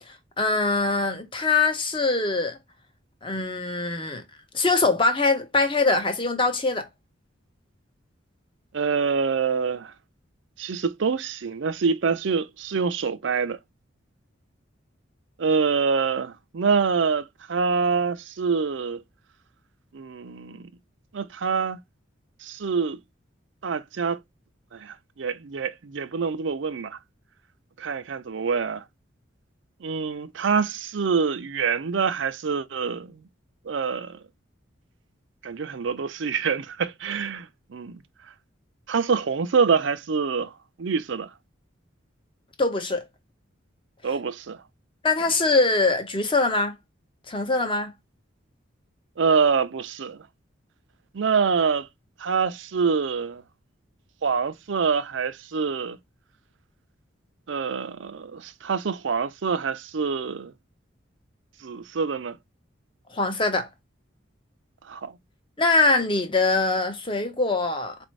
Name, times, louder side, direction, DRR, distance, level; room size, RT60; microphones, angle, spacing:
voice 1, 0.4-2.6 3.2-4.2 4.5-6.9 42.6-43.0 45.0-46.7 47.3-47.9 63.1-63.7 65.6-68.0, left 3 dB, 25° left, 0.9 m, -23 dB
voice 2, 8.7-9.9 10.6-13.6 15.4-19.0 19.9-20.7 21.1-21.8 22.4-23.0 23.6-24.2 24.7-27.0 27.8-28.8 29.8-33.2 33.7-34.2 35.4-38.0 38.9-40.5 40.8-41.3 44.0-44.6 49.2-50.2 51.1-51.9 52.2-53.4 54.2-56.0 57.5-60.5 61.6-62.4 64.9-65.1, right 5 dB, 70° right, 0.5 m, -26 dB
4.2 x 2.6 x 3.1 m
head